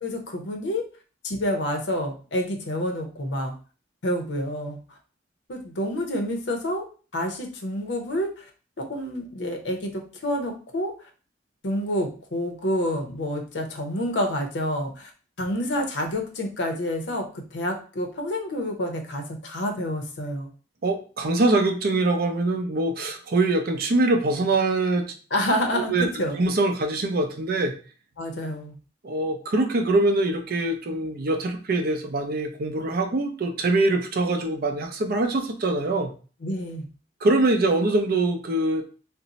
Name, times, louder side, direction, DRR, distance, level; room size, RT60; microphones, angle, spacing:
voice 1, 0.0-0.9 1.2-3.5 4.0-4.8 5.5-6.8 7.1-8.5 8.8-10.9 11.6-15.1 15.4-20.5 25.3-26.4 28.2-28.8 36.4-36.9, left 1 dB, 80° left, 3 dB, 0.7 m, -28 dB
voice 2, 20.8-25.1 25.7-26.1 26.4-27.7 29.0-36.1 37.2-38.8, right 2 dB, 55° right, 5 dB, 0.5 m, -23 dB
2.6 x 2.0 x 3.9 m, 0.38 s
head